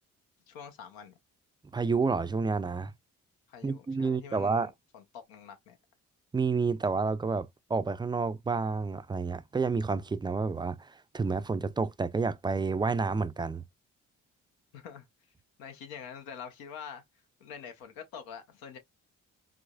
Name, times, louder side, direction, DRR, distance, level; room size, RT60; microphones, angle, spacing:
voice 1, 0.5-1.2 3.5-5.8 14.7-15.1 15.6-17.0 17.4-18.8, left 7 dB, 90° left, 0.9 m, -46 dB
voice 2, 1.7-2.9 3.6-4.7 6.3-13.6, right 4 dB, 15° right, 0.3 m, -29 dB
4.8 x 2.0 x 2.3 m
supercardioid pair, 60°, 34 cm